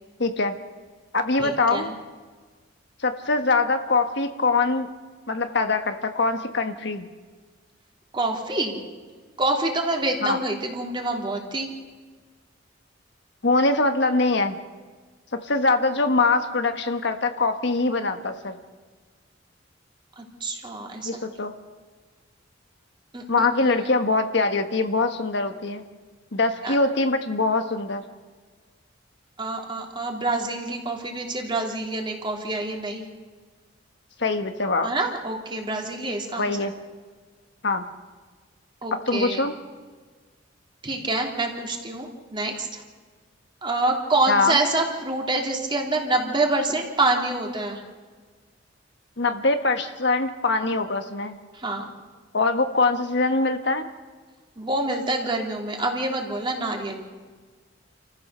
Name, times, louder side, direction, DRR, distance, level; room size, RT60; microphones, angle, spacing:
voice 1, 0.2-0.6 1.1-1.9 3.0-4.9 5.3-7.1 10.2-10.4 13.4-14.6 15.4-18.6 21.0-21.5 23.3-25.8 26.3-28.0 34.2-34.9 36.4-36.7 37.6-37.9 39.1-39.5 44.3-44.6 49.2-51.4 52.3-53.8, left 3 dB, 65° left, 7 dB, 1.4 m, -23 dB
voice 2, 1.4-1.9 8.1-8.8 9.4-11.7 20.2-21.2 23.1-23.7 26.6-26.8 29.4-33.0 34.8-36.7 38.8-39.4 40.8-42.8 43.6-47.8 51.5-51.9 54.6-57.0, right 2 dB, 25° right, 1 dB, 3.0 m, -26 dB
28.5 x 15.0 x 6.8 m, 1.5 s
head